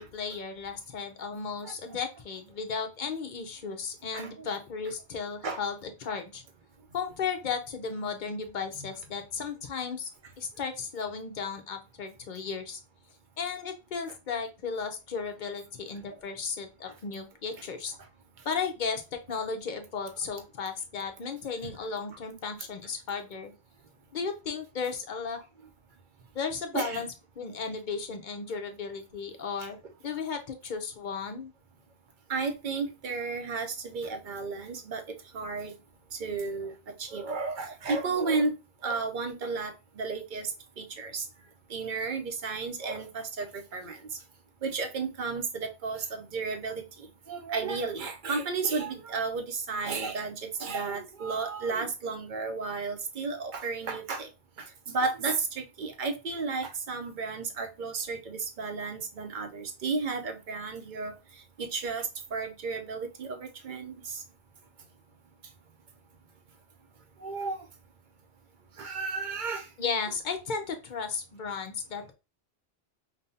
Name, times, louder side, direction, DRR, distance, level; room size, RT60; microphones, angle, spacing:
voice 1, 0.0-6.4 6.9-10.1 10.4-12.8 13.4-17.9 18.4-23.5 24.1-25.4 26.3-29.8 30.0-31.5 69.8-72.1, left 5 dB, 55° left, 0.7 m, -35 dB
voice 2, 4.1-4.5 5.4-5.6 8.8-8.9 21.6-21.7 26.7-27.0 29.6-29.7 32.3-35.7 36.1-36.7 37.0-38.6 38.8-41.3 41.7-44.0 44.6-54.3 54.6-61.1 61.6-64.2 67.2-67.6 68.8-69.7, right 4 dB, 55° right, 0.8 m, -33 dB
5.3 x 2.2 x 2.7 m
omnidirectional pair, 1.1 m